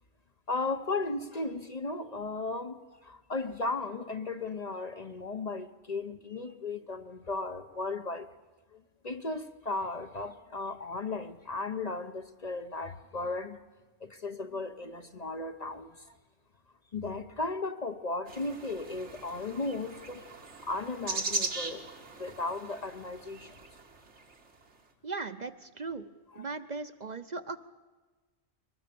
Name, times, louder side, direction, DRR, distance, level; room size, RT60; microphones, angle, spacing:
voice 1, 0.5-8.3 8.7-13.6 14.0-16.2 16.9-20.2 20.6-21.8 22.2-23.6 26.3-26.5, left 3 dB, 40° left, 0.9 m, -36 dB
sound 1, 18.3-24.5, right 3 dB, 90° right, 2.0 m, -39 dB
voice 2, 25.0-26.0 26.4-27.7, right 4 dB, 45° right, 0.8 m, -38 dB
22.5 x 20.0 x 6.9 m
omnidirectional pair, 1.1 m